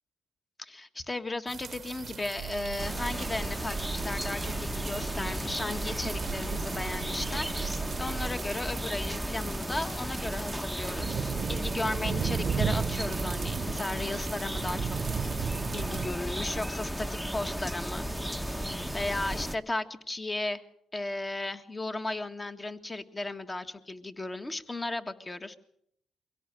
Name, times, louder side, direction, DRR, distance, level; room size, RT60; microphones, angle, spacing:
voice 1, 0.6-7.5 8.0-14.9 15.3-15.4 15.7-18.1 18.7-20.6 20.9-25.6, left 2 dB, 20° left, 8 dB, 1.6 m, -35 dB
sound 1, 1.5-16.1, right 7 dB, 50° right, 0.9 m, -37 dB
sound 2, 2.4-8.3, right 10 dB, 80° right, 0.8 m, -41 dB
sound 3, 2.8-19.6, equal, ahead, 1.0 m, -34 dB
23.5 x 17.0 x 7.7 m, 0.71 s
cardioid pair, 90°, 0 cm